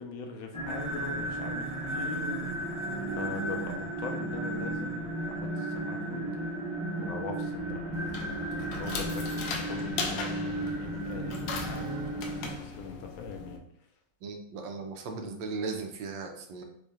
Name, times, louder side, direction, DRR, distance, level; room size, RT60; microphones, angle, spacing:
voice 1, 0.0-2.9 3.1-6.5 7.0-13.6, left 5 dB, 90° left, 4 dB, 1.5 m, -42 dB
sound 1, 0.5-12.5, right 1 dB, 20° right, 1.9 m, -34 dB
sound 2, 7.9-13.6, left 4 dB, 70° left, 1.2 m, -38 dB
voice 2, 14.2-16.6, right 4 dB, 75° right, 3 dB, 1.3 m, -37 dB
5.0 x 4.1 x 2.4 m, 0.69 s
omnidirectional pair, 2.2 m